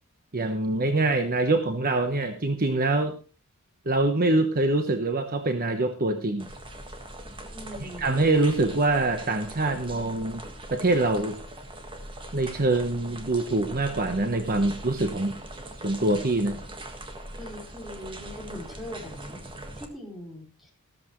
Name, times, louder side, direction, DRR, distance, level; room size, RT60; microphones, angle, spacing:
voice 1, 0.3-3.2 3.9-6.5 7.8-10.4 10.7-11.3 12.3-15.4 15.8-16.6, right 2 dB, 40° right, 6 dB, 1.1 m, -24 dB
sound 1, 6.4-19.9, right 1 dB, 25° right, 1.7 m, -41 dB
voice 2, 7.5-8.3 17.3-19.4 19.7-20.7, left 1 dB, ahead, -2 dB, 4.8 m, -41 dB
14.0 x 13.5 x 3.2 m, 0.34 s
head